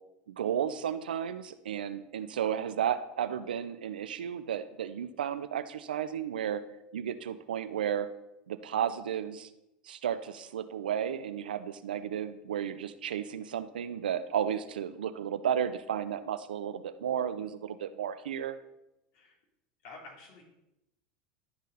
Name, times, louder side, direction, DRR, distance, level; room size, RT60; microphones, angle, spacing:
voice 1, 0.3-6.6 6.9-8.1 8.5-9.5 9.9-18.6, right 9 dB, 85° right, 12 dB, 0.5 m, -33 dB
voice 2, 19.8-20.4, left 3 dB, 60° left, -1 dB, 3.0 m, -49 dB
12.0 x 4.1 x 4.0 m, 0.88 s
hypercardioid pair, 95°, 5 cm